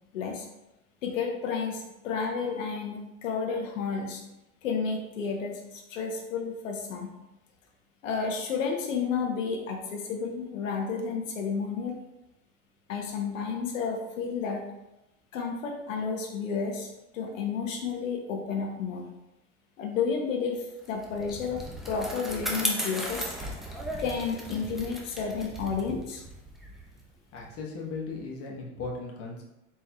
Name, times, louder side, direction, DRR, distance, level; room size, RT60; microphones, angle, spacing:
voice 1, 0.1-0.4 1.0-4.2 4.6-7.1 8.0-11.9 12.9-14.6 15.3-16.9 17.1-19.0 19.8-21.6 21.9-23.3 24.0-26.2, left 5 dB, 85° left, 1 dB, 0.8 m, -31 dB
Bicycle, 20.8-27.6, equal, ahead, 0.5 m, -36 dB
voice 2, 27.3-29.4, left 3 dB, 35° left, -1 dB, 1.0 m, -37 dB
4.2 x 3.4 x 2.2 m, 0.92 s
hypercardioid pair, 95°, 38 cm